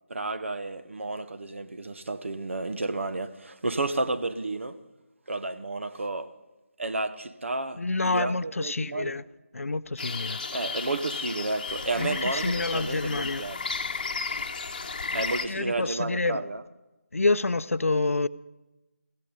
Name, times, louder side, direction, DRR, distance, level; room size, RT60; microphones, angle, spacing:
voice 1, 0.1-4.8 5.3-6.3 6.8-9.1 10.5-13.6 15.1-16.6, right 2 dB, 65° right, 1.0 m, -31 dB
voice 2, 7.7-9.2 9.5-10.4 11.9-13.5 15.1-16.5 17.1-18.3, left 3 dB, 85° left, 0.6 m, -28 dB
sound 1, 10.0-15.5, left 4 dB, 35° left, 1.0 m, -33 dB
15.5 x 14.0 x 5.2 m
figure-of-eight pair, 170°, 7 cm